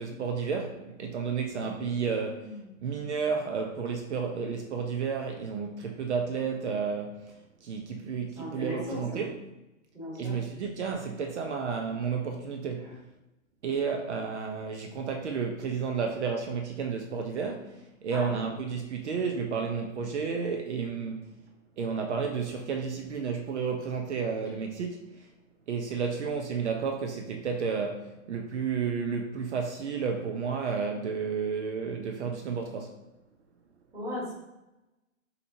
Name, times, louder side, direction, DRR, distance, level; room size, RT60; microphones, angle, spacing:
voice 1, 0.0-2.4 2.8-9.3 10.2-13.0 13.6-21.3 21.8-25.3 25.7-33.0, right 5 dB, 60° right, 0.6 m, -32 dB
voice 2, 1.6-2.7 8.4-9.2 9.9-10.3 12.8-12.9 18.1-18.4 33.9-34.3, left 1 dB, 10° right, 1.2 m, -38 dB
6.5 x 2.9 x 2.7 m
hypercardioid pair, 170°, 40 cm